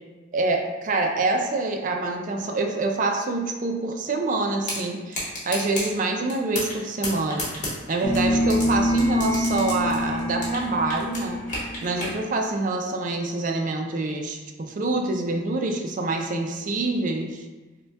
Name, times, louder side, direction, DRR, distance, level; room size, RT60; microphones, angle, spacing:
voice 1, 0.3-7.5 7.9-11.4 11.8-17.4, right 2 dB, 45° right, 3 dB, 0.3 m, -26 dB
sound 1, 4.6-4.8 5.1-5.9 6.3-6.8 7.0-8.6 9.0-10.7 10.9-12.1, left 1 dB, 40° left, 1.0 m, -30 dB
sound 2, 8.0-12.1, equal, 60° left, 0.7 m, -25 dB
5.0 x 2.2 x 2.3 m, 1.3 s
head